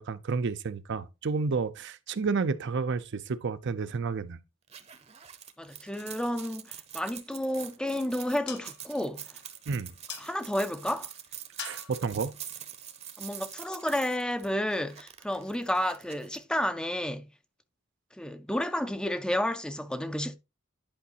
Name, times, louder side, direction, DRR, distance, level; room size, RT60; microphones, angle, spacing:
voice 1, 0.0-4.4 9.7-9.9 11.6-12.3, right 4 dB, 60° right, 0.5 m, -31 dB
sound 1, 4.7-16.4, right 9 dB, 30° right, 0.8 m, -45 dB
voice 2, 5.6-9.2 10.2-11.1 13.2-17.3 18.2-20.4, left 1 dB, 5° left, 0.5 m, -31 dB
sound 2, 7.3-13.7, left 8 dB, 60° left, 0.8 m, -48 dB
10.5 x 4.9 x 2.8 m
head